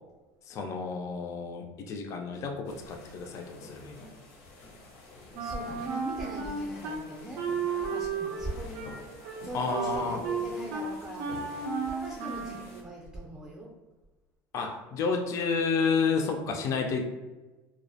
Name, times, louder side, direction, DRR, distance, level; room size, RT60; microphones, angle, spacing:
voice 1, 0.5-4.0 9.5-10.2 14.5-17.0, left 5 dB, 45° left, 3 dB, 0.3 m, -30 dB
sound 1, 2.6-12.8, left 2 dB, 90° left, 0.7 m, -49 dB
Wind instrument woodwind instrument, 5.3-7.0 7.4-12.7, right 5 dB, 75° right, 0.4 m, -34 dB
voice 2, 5.4-7.4 7.8-8.9 9.4-13.7, right 1 dB, 15° right, -4 dB, 0.5 m, -41 dB
2.3 x 2.1 x 2.6 m, 1.2 s
supercardioid pair, 115°, 7 cm